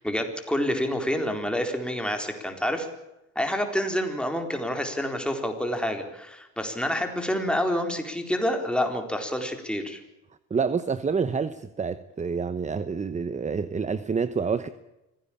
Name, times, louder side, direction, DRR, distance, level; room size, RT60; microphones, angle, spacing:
voice 1, 0.0-2.9 3.4-10.0, equal, 5° left, 5 dB, 4.1 m, -28 dB
voice 2, 10.5-14.7, right 5 dB, 25° right, 13 dB, 1.0 m, -28 dB
25.0 x 16.5 x 8.7 m, 0.94 s
cardioid pair, 125°, 31 cm